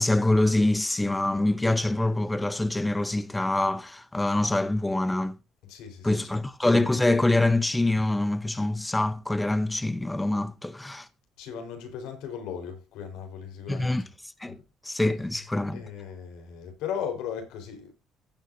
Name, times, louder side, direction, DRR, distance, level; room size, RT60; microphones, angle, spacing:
voice 1, 0.0-5.4 6.0-11.1 13.7-14.0 14.4-14.6 14.8-15.8, left 2 dB, 10° left, 0.6 m, -25 dB
voice 2, 5.6-6.4 11.4-13.9 14.5-14.6 15.7-17.9, left 8 dB, 85° left, 4.1 m, -37 dB
15.0 x 8.3 x 2.6 m
cardioid pair, 125°, 0 cm